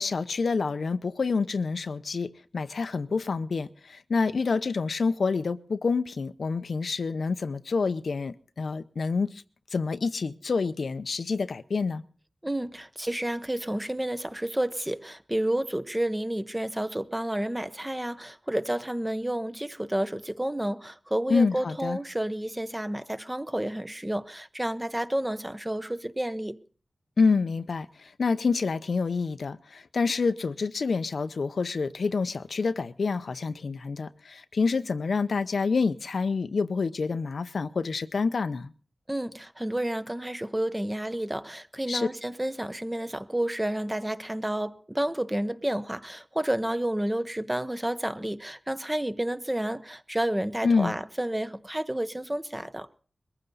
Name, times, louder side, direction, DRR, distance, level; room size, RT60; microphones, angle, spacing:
voice 1, 0.0-2.3 2.5-9.3 9.7-12.0 21.3-22.0 27.2-27.9 28.2-38.7 41.9-42.1 50.6-50.9, left 4 dB, 80° left, 0.7 m, -27 dB
voice 2, 12.4-26.6 39.1-52.9, right 1 dB, 10° right, 0.8 m, -30 dB
22.0 x 14.5 x 4.0 m
wide cardioid pair, 100°, 0 cm